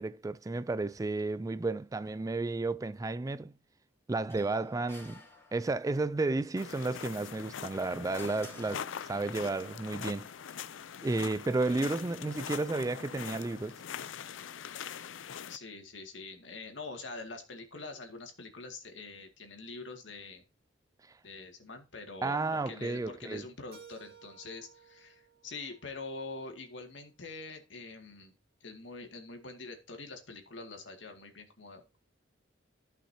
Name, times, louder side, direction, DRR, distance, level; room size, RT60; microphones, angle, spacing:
voice 1, 0.0-3.5 4.1-5.2 5.5-10.3 11.0-13.8 22.2-23.4, right 3 dB, 20° right, 0.3 m, -32 dB
sound 1, 4.3-6.0 7.4-9.4, left 2 dB, 15° left, 2.7 m, -53 dB
sound 2, 6.6-15.6, left 8 dB, 90° left, 0.5 m, -43 dB
voice 2, 15.5-20.4 21.2-28.3 28.6-32.0, left 3 dB, 70° left, 2.2 m, -45 dB
Keyboard (musical), 23.7-26.6, right 6 dB, 55° right, 2.6 m, -57 dB
15.0 x 5.8 x 2.8 m
head